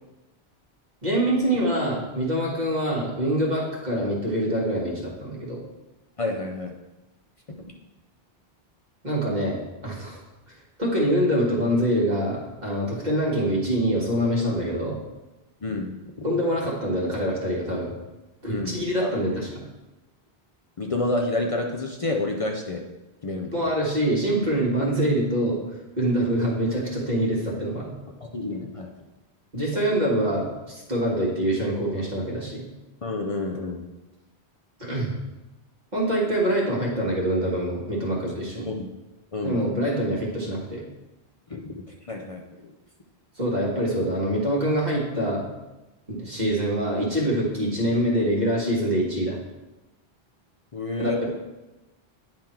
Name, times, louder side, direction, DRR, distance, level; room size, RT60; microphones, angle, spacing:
voice 1, 1.0-5.6 9.0-10.2 10.5-15.0 16.2-17.9 18.4-19.6 23.5-25.6 26.0-27.9 29.5-32.7 34.8-35.1 35.9-38.7 39.4-40.8 43.4-45.5 46.1-49.4 51.0-51.1, right 1 dB, 45° right, -4 dB, 1.7 m, -25 dB
voice 2, 6.2-6.7 7.5-7.7 15.6-15.9 16.2-16.3 18.5-19.1 20.8-22.8 23.2-23.5 28.2-28.9 33.0-33.8 38.7-38.9 39.3-39.6 41.5-42.7 50.7-51.2, left 2 dB, 40° left, 1 dB, 0.5 m, -29 dB
9.5 x 3.7 x 4.4 m, 1.1 s
omnidirectional pair, 1.1 m